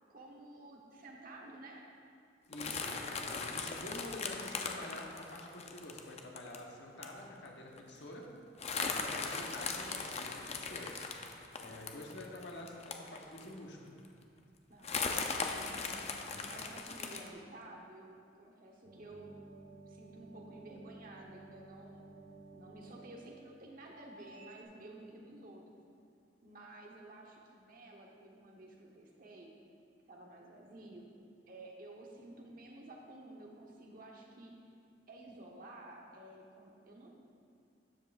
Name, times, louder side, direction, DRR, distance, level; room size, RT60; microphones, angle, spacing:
voice 1, 0.1-1.8 12.2-12.3 14.7-19.3 19.9-22.0 22.5-25.6 26.4-29.5 30.1-31.1 31.5-34.6 35.1-37.1, right 2 dB, 55° right, -1 dB, 1.1 m, -52 dB
voice 2, 2.5-8.3 8.7-11.0 11.6-13.9 16.0-16.5, left 1 dB, 70° left, 0 dB, 1.2 m, -48 dB
sound 1, 2.5-6.6 7.0-7.2 7.5-7.6 7.8-8.0 8.6-13.6 14.0-14.1 14.8-17.3, left 4 dB, 35° left, 0.6 m, -39 dB
sound 2, 18.8-24.6, right 2 dB, 85° right, 1.8 m, -55 dB
12.5 x 7.5 x 2.5 m, 2.4 s
head